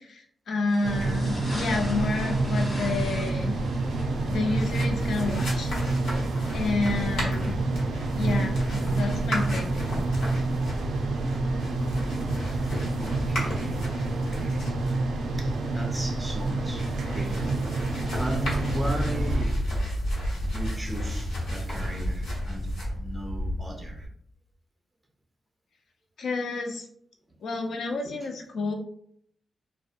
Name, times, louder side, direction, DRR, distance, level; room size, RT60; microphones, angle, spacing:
voice 1, 0.0-3.6 4.3-5.7 6.5-7.6 8.2-9.9 26.2-26.9 27.4-28.7, left 3 dB, 70° left, 3 dB, 0.4 m, -30 dB
sound 1, 0.7-6.7, equal, 45° left, 0.9 m, -41 dB
sound 2, 0.8-19.4, right 2 dB, 85° right, 0.3 m, -28 dB
voice 2, 2.4-2.9 13.0-14.8 15.3-19.6 20.4-24.1 28.0-28.2, equal, 10° right, 0 dB, 0.4 m, -37 dB
sound 3, 4.1-24.1, equal, 90° left, 1.0 m, -33 dB
2.5 x 2.1 x 2.4 m, 0.66 s
wide cardioid pair, 125°, 0 cm